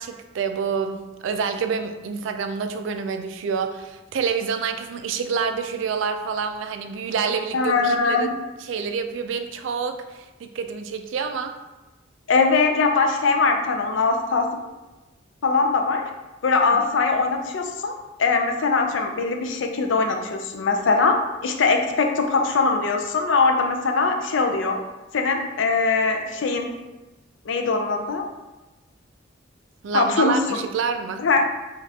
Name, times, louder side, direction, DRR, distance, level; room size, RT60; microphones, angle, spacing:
voice 1, 0.0-8.3 8.6-11.5 16.7-16.9 29.8-31.2, right 6 dB, 75° right, 7 dB, 0.3 m, -27 dB
voice 2, 7.5-8.3 12.3-14.5 15.4-16.0 16.4-17.9 18.2-21.2 21.4-24.8 25.1-26.7 27.5-28.2 29.9-30.4 31.2-31.4, left 4 dB, 70° left, 4 dB, 0.4 m, -21 dB
5.1 x 2.4 x 2.7 m, 1.1 s
head